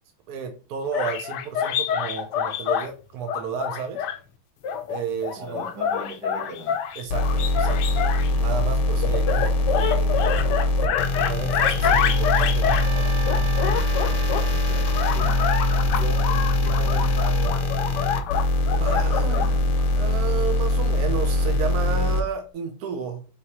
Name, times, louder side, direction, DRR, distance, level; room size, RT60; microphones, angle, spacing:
voice 1, 0.3-4.1 4.9-5.7 7.0-7.8 8.4-10.4 10.8-13.1 18.8-19.5 20.0-23.3, right 6 dB, 70° right, 0.9 m, -32 dB
sound 1, 0.9-2.9 3.3-4.2 4.6-8.3 9.0-12.9 13.3-14.5 14.9-19.6, left 8 dB, 70° left, 1.0 m, -26 dB
voice 2, 5.3-6.7 14.3-18.4 18.7-19.6, equal, 50° right, 2.3 m, -39 dB
sound 2, 7.1-22.2, left 1 dB, 90° left, 1.7 m, -22 dB
Trumpet, 12.6-17.1, right 6 dB, 20° right, 1.1 m, -40 dB
4.6 x 3.4 x 2.8 m
omnidirectional pair, 2.2 m